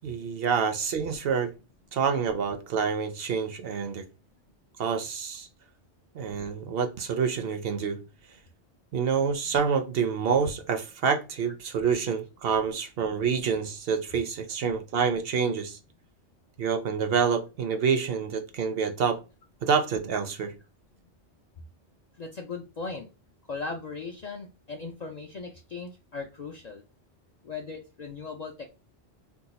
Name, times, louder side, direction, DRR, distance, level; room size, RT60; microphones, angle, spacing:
voice 1, 0.0-1.5 1.9-4.0 4.8-5.5 6.1-8.0 8.9-15.8 16.6-19.2 19.6-20.5, right 6 dB, 65° right, 0.7 m, -27 dB
voice 2, 22.1-23.1 23.5-26.8 27.4-28.7, left 4 dB, 60° left, 0.4 m, -38 dB
2.7 x 2.2 x 4.0 m
omnidirectional pair, 1.2 m